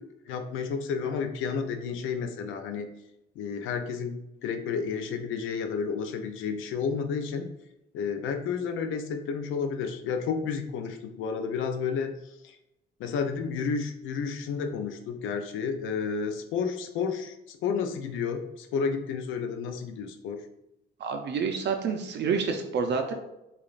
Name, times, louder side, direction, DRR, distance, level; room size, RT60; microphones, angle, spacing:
voice 1, 0.0-2.9 3.4-7.5 7.9-12.1 12.4-12.6 13.0-20.4, left 6 dB, 90° left, 6 dB, 0.5 m, -31 dB
voice 2, 21.0-23.1, right 5 dB, 60° right, 4 dB, 0.5 m, -28 dB
4.9 x 2.4 x 2.4 m, 0.88 s
cardioid pair, 90°, 20 cm